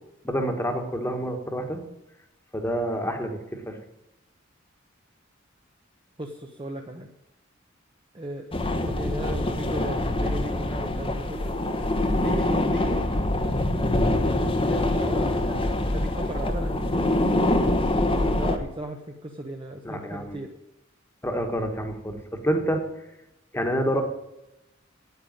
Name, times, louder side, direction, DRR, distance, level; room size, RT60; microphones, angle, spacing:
voice 1, 0.2-1.8 2.5-3.8 19.8-20.4 21.2-22.2 22.4-22.8 23.5-24.0, equal, 10° left, 4 dB, 1.5 m, -27 dB
voice 2, 6.2-7.1 8.1-8.4 8.7-11.6 12.2-13.0 14.3-15.6 15.9-17.8 18.1-20.5, right 1 dB, 25° right, 2 dB, 1.0 m, -36 dB
sound 1, 8.5-18.6, left 1 dB, 25° left, 1.1 m, -24 dB
9.3 x 8.8 x 8.9 m, 0.93 s
head